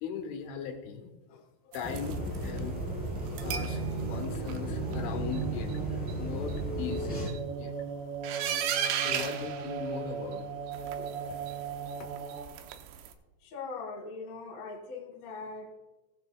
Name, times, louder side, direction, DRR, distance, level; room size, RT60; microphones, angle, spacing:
voice 1, 0.0-1.4 1.7-2.8 3.4-7.7 8.8-10.4 11.0-11.1 12.0-12.1, left 7 dB, 80° left, 4 dB, 3.7 m, -39 dB
sound 1, 1.7-2.6 3.3-3.8 4.1-4.6 4.9-5.0 5.3-5.4 5.7-5.8 6.1-6.2 6.5-6.6 6.9-7.4 8.2-10.4 10.7-13.1, right 9 dB, 85° right, 2.6 m, -36 dB
sound 2, 1.8-7.3, right 1 dB, ahead, 3.0 m, -35 dB
sound 3, 3.4-12.5, right 5 dB, 60° right, 2.4 m, -37 dB
voice 2, 13.4-15.8, left 4 dB, 50° left, 0 dB, 2.2 m, -41 dB
18.5 x 9.2 x 2.3 m, 1.2 s
omnidirectional pair, 5.6 m